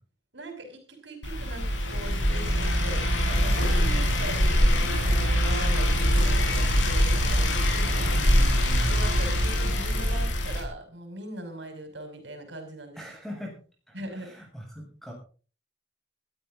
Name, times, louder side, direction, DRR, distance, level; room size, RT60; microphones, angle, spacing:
voice 1, 0.3-8.1 8.9-13.0 13.9-14.3, right 1 dB, 70° right, 5 dB, 5.6 m, -40 dB
sound 1, 1.2-10.6, equal, 85° left, 5.7 m, -23 dB
voice 2, 8.0-9.4 13.0-13.6 13.9-15.1, equal, ahead, 0 dB, 7.4 m, -38 dB
21.5 x 13.5 x 3.8 m, 0.38 s
head